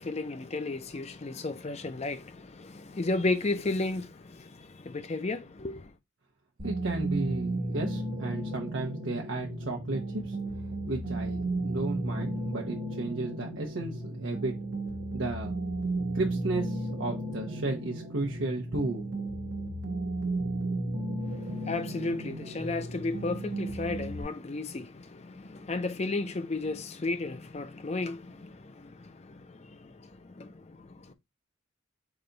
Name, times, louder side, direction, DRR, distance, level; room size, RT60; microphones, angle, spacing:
voice 1, 0.0-5.9 21.2-31.1, left 2 dB, 35° left, 0.5 m, -34 dB
sound 1, 6.6-24.2, right 2 dB, 65° right, 1.1 m, -34 dB
voice 2, 6.6-10.4 10.9-14.5 15.1-15.5 16.1-19.1, right 2 dB, 80° right, 0.8 m, -34 dB
4.9 x 2.3 x 3.9 m
head